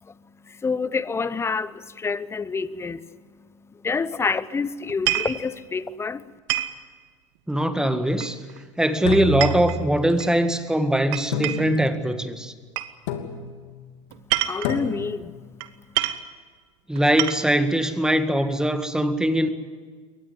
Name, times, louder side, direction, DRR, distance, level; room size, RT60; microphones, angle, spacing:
voice 1, 0.0-6.4 14.1-16.0, left 4 dB, 15° left, 0.9 m, -29 dB
sound 1, 4.9-5.4 6.5-6.8 8.2-8.6 9.1-10.3 11.1-11.8 12.8-12.9 14.1-14.8 15.6-15.7 16.0-16.3 17.0-17.6, right 15 dB, 60° right, 1.4 m, -27 dB
voice 2, 7.5-8.4 8.8-12.5 16.9-19.5, right 1 dB, 5° right, 1.7 m, -21 dB
sound 2, 9.0-10.2 11.3-12.1 13.1-13.7 14.6-15.3, left 2 dB, 75° left, 2.8 m, -30 dB
22.5 x 19.0 x 9.6 m
hypercardioid pair, 100°, 16 cm